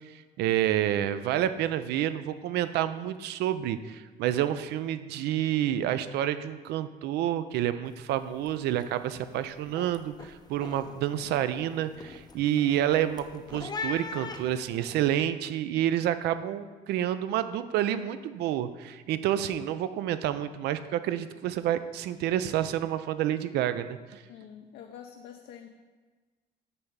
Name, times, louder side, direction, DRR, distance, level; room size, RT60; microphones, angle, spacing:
voice 1, 0.0-24.2, right 11 dB, 80° right, 12 dB, 0.4 m, -29 dB
sound 1, 7.9-8.1 8.4-8.8 9.2-15.2, left 4 dB, 25° left, 0.5 m, -41 dB
voice 2, 24.3-25.7, left 8 dB, 75° left, 3 dB, 0.5 m, -46 dB
8.4 x 3.4 x 5.5 m, 1.4 s
cardioid pair, 110°, 17 cm